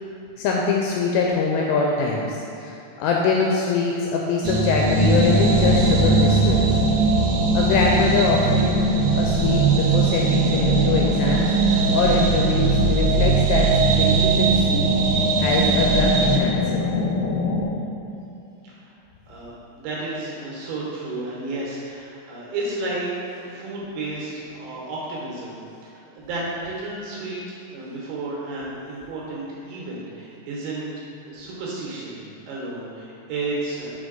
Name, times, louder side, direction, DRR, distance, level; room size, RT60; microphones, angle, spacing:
voice 1, 0.4-6.8 7.5-8.8 9.1-16.9, left 4 dB, 85° left, -1 dB, 2.6 m, -24 dB
sound 1, 4.4-16.4, right 4 dB, 85° right, 2.9 m, -20 dB
sound 2, 4.9-17.7, left 3 dB, 65° left, 1.4 m, -25 dB
voice 2, 19.3-33.9, right 2 dB, 70° right, -5 dB, 2.9 m, -32 dB
6.0 x 5.0 x 3.8 m, 2.8 s
omnidirectional pair, 5.0 m